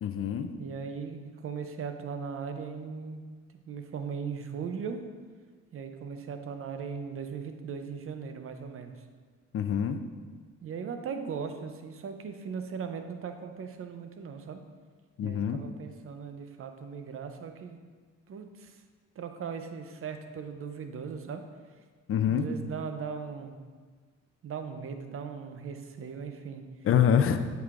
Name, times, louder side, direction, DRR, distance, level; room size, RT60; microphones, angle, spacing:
voice 1, 0.0-0.5 9.5-10.0 15.2-15.6 22.1-22.5 26.8-27.4, left 8 dB, 45° left, 8 dB, 0.5 m, -25 dB
voice 2, 0.6-3.2 3.5-5.0 5.7-9.0 10.6-14.6 15.2-17.8 18.3-18.8 19.2-21.5 22.3-23.6 24.4-26.6, right 6 dB, 45° right, 7 dB, 0.6 m, -38 dB
7.9 x 4.8 x 2.5 m, 1.5 s
cardioid pair, 90°, 30 cm